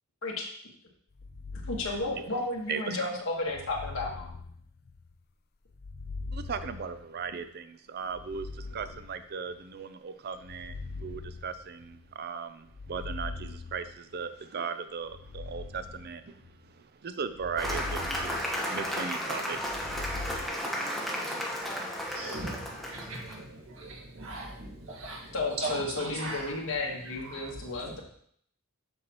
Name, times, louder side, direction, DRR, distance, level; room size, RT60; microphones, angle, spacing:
sound 1, 1.1-2.7 3.5-5.2 5.7-7.5 8.1-9.6 10.3-12.1 12.7-14.3 15.0-16.7 17.3-19.1 19.6-20.5, left 3 dB, 50° left, 0.5 m, -42 dB
voice 1, 1.7-4.3 25.3-28.0, left 2 dB, 75° left, -2 dB, 1.5 m, -33 dB
voice 2, 2.7-3.1 6.3-10.7 11.0-16.4 17.0-19.8 21.1-21.4, right 6 dB, 50° right, 10 dB, 0.5 m, -37 dB
Cheering / Applause, 17.6-23.3, equal, ahead, 1.1 m, -33 dB
voice 3, 22.1-28.0, right 2 dB, 75° right, -1 dB, 1.8 m, -40 dB
7.8 x 5.6 x 3.0 m, 0.64 s
head